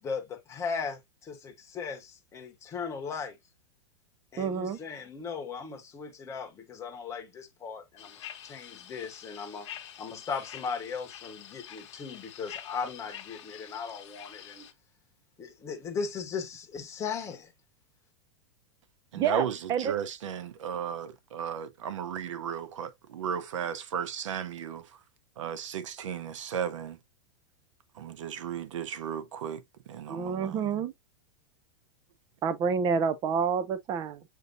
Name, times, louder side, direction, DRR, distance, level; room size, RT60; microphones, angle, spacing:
voice 1, 0.0-3.4 4.3-9.7 10.0-14.7 15.4-17.5, left 5 dB, 20° left, 1.1 m, -37 dB
voice 2, 4.4-4.8 19.2-19.9 30.1-30.9 32.4-34.2, right 6 dB, 25° right, 0.5 m, -28 dB
sound 1, 8.0-14.7, left 10 dB, 70° left, 1.0 m, -47 dB
voice 3, 19.1-24.8 25.4-27.0 28.0-29.6 29.9-30.7, right 8 dB, 90° right, 0.8 m, -35 dB
6.6 x 2.8 x 2.5 m
supercardioid pair, 150°, 15 cm